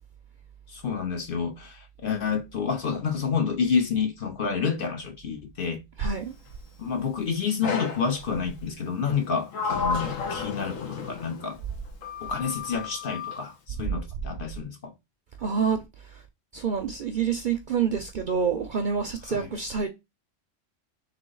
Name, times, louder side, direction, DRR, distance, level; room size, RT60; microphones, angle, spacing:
voice 1, 0.7-5.8 6.8-11.6 12.2-14.9 19.3-19.5, left 6 dB, 55° left, 0.7 m, -29 dB
voice 2, 6.0-6.3 15.4-16.2 16.5-19.9, right 6 dB, 55° right, 0.6 m, -27 dB
Sliding door, 7.6-8.1 9.1-11.5 12.0-13.4, left 5 dB, 90° left, 1.2 m, -32 dB
3.3 x 3.3 x 3.8 m
omnidirectional pair, 1.3 m